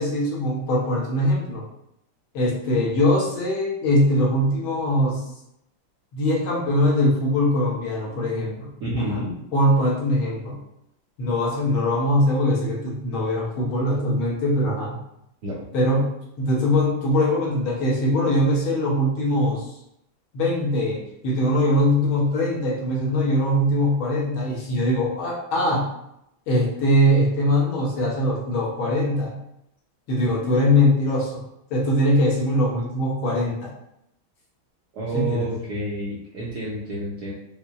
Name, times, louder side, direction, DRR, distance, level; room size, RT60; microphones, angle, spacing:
voice 1, 0.0-1.6 2.3-5.2 6.1-9.2 9.5-10.6 11.2-15.0 15.7-16.1 16.4-19.7 20.3-25.9 26.5-29.4 30.1-31.4 31.7-33.7 35.1-35.5, left 1 dB, 70° left, -4 dB, 1.6 m, -22 dB
voice 2, 8.8-9.3 15.4-15.6 34.9-37.3, right 1 dB, 75° right, -6 dB, 0.9 m, -29 dB
5.5 x 2.1 x 2.3 m, 0.81 s
omnidirectional pair, 2.4 m